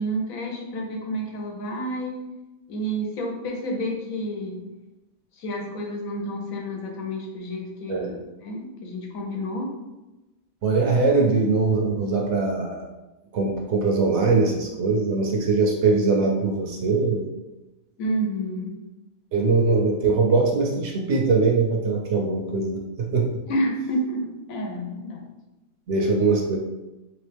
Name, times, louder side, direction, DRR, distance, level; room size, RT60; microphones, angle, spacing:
voice 1, 0.0-2.2 2.7-4.7 5.4-8.1 8.4-9.7 18.0-18.8 23.5-25.3, equal, 80° left, 1 dB, 1.2 m, -29 dB
voice 2, 7.9-8.2 10.6-12.9 13.3-17.3 19.3-23.4 25.9-26.6, right 3 dB, 65° right, 1 dB, 0.8 m, -22 dB
3.3 x 3.0 x 3.3 m, 1.0 s
omnidirectional pair, 1.4 m